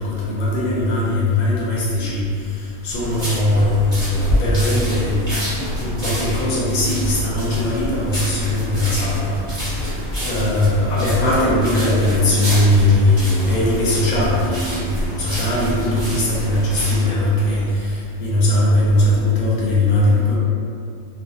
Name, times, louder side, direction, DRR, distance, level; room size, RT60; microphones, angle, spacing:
voice 1, 0.0-2.2 2.8-5.3 5.8-9.4 9.7-9.8 10.3-20.4, left 1 dB, 50° left, -6 dB, 0.6 m, -19 dB
sound 1, 2.9-17.1, equal, 15° right, 1.2 m, -27 dB
sound 2, 9.6-17.7, equal, 80° left, 1.0 m, -41 dB
2.5 x 2.1 x 2.5 m, 2.4 s
omnidirectional pair, 1.2 m